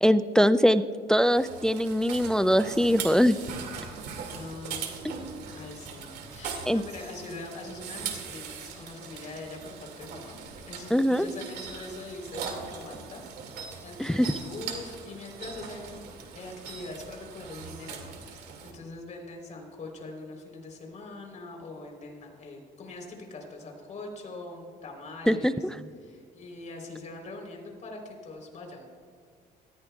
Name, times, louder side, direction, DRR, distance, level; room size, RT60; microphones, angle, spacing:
voice 1, 0.0-0.8 1.1-3.4 6.7-6.8 10.9-11.3 14.0-14.3 25.3-25.5, equal, 5° left, 13 dB, 0.3 m, -22 dB
sound 1, 1.3-18.7, right 6 dB, 75° right, 2.3 m, -40 dB
voice 2, 4.3-4.9 5.6-10.4 10.6-16.1 16.3-25.6 26.0-28.9, left 2 dB, 45° left, 1 dB, 3.7 m, -42 dB
19.0 x 14.5 x 2.3 m, 2.1 s
cardioid pair, 110°, 17 cm